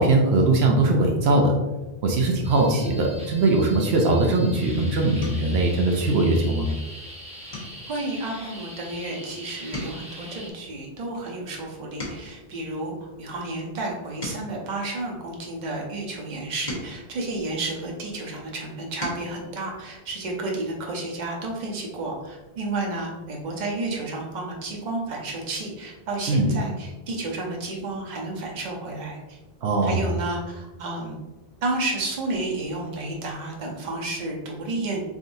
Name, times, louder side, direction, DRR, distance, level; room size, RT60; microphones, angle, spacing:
voice 1, 0.0-1.5 2.0-6.7 26.3-26.5 29.6-30.1, right 2 dB, 80° right, 1 dB, 0.9 m, -20 dB
sound 1, 2.4-10.5, equal, 10° right, 0.6 m, -42 dB
sound 2, 5.2-5.6 6.1-6.4 6.8-7.0 7.5-9.3 9.6-12.5 13.1-15.6 16.2-18.1 18.6-19.4 20.8-20.9 21.2-21.3, left 1 dB, 45° left, 1.2 m, -40 dB
voice 2, 7.9-29.4 29.8-31.2 31.6-35.0, right 2 dB, 50° right, -1 dB, 0.9 m, -31 dB
4.0 x 3.7 x 2.6 m, 1.1 s
omnidirectional pair, 1.1 m